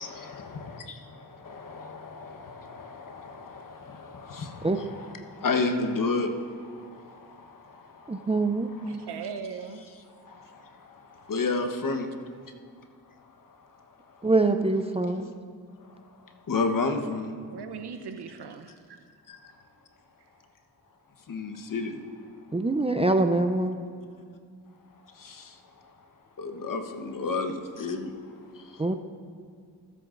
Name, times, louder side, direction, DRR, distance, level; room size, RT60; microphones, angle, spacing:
voice 1, 0.0-9.1 10.2-12.1 13.6-13.7 14.1-14.2 16.5-17.3 19.3-19.4 21.3-22.0 25.1-25.9 26.4-28.1 28.5-28.9, left 3 dB, 50° left, 5 dB, 1.2 m, -32 dB
voice 2, 8.1-9.0 14.2-15.3 22.5-23.8 28.8-28.9, right 2 dB, 15° right, 7 dB, 0.5 m, -24 dB
voice 3, 8.9-9.8 17.5-19.0, right 6 dB, 70° right, 7 dB, 0.9 m, -39 dB
20.5 x 7.8 x 2.6 m, 2.1 s
cardioid pair, 55°, 40 cm